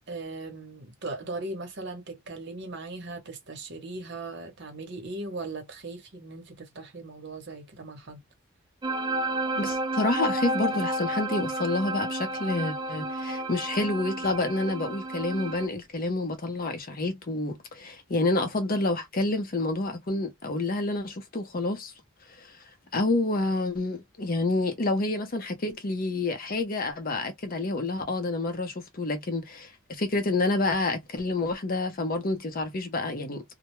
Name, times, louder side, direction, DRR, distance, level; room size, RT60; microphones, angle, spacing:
voice 1, 0.1-8.2, right 2 dB, 60° right, 0.9 m, -38 dB
sound 1, 8.8-15.7, right 1 dB, 20° right, 0.4 m, -31 dB
voice 2, 9.5-21.9 22.4-22.5 22.9-33.4, left 2 dB, 45° left, 0.7 m, -28 dB
2.2 x 2.1 x 2.9 m
head